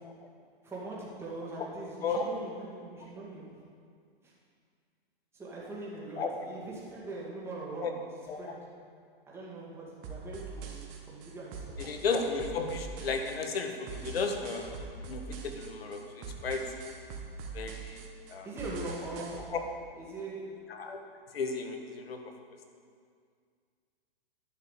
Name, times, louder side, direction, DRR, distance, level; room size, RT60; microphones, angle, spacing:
voice 1, 0.6-3.5 4.2-4.3 5.3-7.9 8.4-8.6 9.3-10.8 11.1-11.8 18.4-19.4 20.0-20.5, right 2 dB, 10° right, -6 dB, 2.2 m, -41 dB
sound 1, 10.0-19.4, right 4 dB, 30° right, 1.4 m, -44 dB
voice 2, 11.8-16.6 17.5-18.0 18.3-18.5 19.5-19.6 20.7-21.0 21.3-22.2, left 4 dB, 80° left, 4 dB, 1.6 m, -34 dB
11.0 x 5.6 x 8.3 m, 2.1 s
hypercardioid pair, 150°, 30 cm